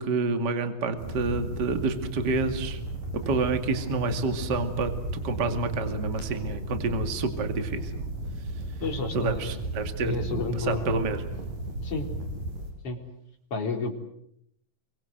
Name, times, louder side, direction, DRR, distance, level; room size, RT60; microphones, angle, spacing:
voice 1, 0.0-2.8 3.1-4.9 5.2-8.0 9.1-11.2, right 3 dB, 35° right, 7 dB, 2.6 m, -28 dB
sound 1, 1.0-12.7, right 2 dB, 85° right, 6.7 m, -35 dB
voice 2, 8.8-9.6 10.0-10.9 11.8-12.1 12.8-13.0 13.5-13.9, left 3 dB, 45° left, 3 dB, 4.7 m, -30 dB
29.0 x 24.0 x 7.8 m, 0.72 s
omnidirectional pair, 3.8 m